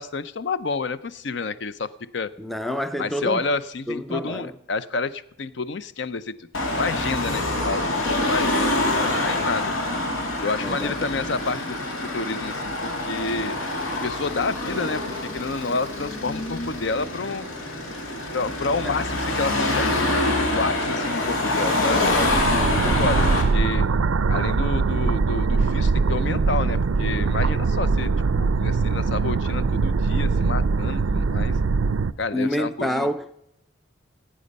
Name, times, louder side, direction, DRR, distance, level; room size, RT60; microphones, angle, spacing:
voice 1, 0.0-2.3 3.0-9.7 10.4-13.6 13.9-15.0 15.3-17.5 18.3-23.9 24.3-31.5 32.2-33.1, left 3 dB, 60° left, 0.5 m, -29 dB
voice 2, 2.4-3.4 3.9-4.5 10.6-11.2 18.8-18.9 22.5-23.0 32.3-33.3, left 1 dB, ahead, 0.5 m, -28 dB
Car passing by / Traffic noise roadway noise / Engine, 6.5-23.4, left 2 dB, 85° left, 2.5 m, -25 dB
sound 1, 21.9-32.1, right 4 dB, 85° right, 0.5 m, -22 dB
16.5 x 8.7 x 5.3 m
head